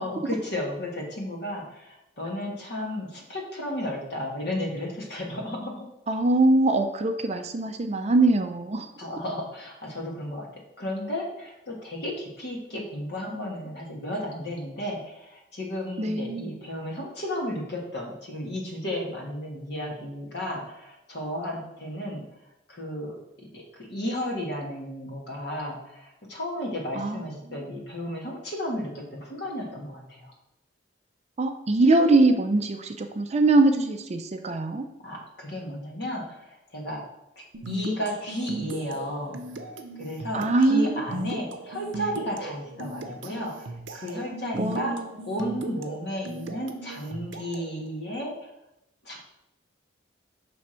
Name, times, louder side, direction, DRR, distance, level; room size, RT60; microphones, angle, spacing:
voice 1, 0.0-5.9 9.0-10.5 10.8-22.2 22.7-23.2 23.5-30.3 35.0-37.0 37.7-39.4 40.0-45.0 45.3-48.5 49.0-49.2, left 1 dB, 60° left, -1 dB, 1.4 m, -33 dB
voice 2, 6.1-8.9 16.0-16.5 26.9-27.2 31.4-34.9 40.3-41.0 44.5-45.0, right 2 dB, 35° right, 6 dB, 0.4 m, -22 dB
sound 1, 37.5-47.8, right 2 dB, 80° right, 0.6 m, -37 dB
6.4 x 3.4 x 4.3 m, 0.87 s
head